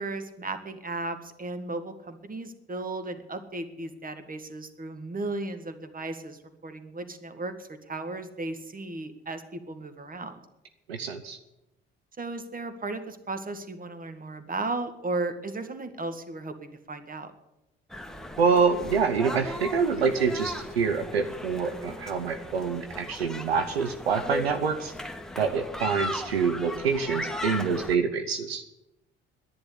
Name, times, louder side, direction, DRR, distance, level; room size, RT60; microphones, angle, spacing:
voice 1, 0.0-10.4 12.2-17.3, right 2 dB, 30° right, 9 dB, 1.8 m, -35 dB
voice 2, 10.9-11.4 18.4-24.9 25.4-28.6, right 5 dB, 90° right, 8 dB, 0.7 m, -26 dB
sound 1, 17.9-28.0, left 1 dB, ahead, 1.6 m, -37 dB
10.5 x 10.0 x 9.9 m, 0.91 s
figure-of-eight pair, 50°, 30 cm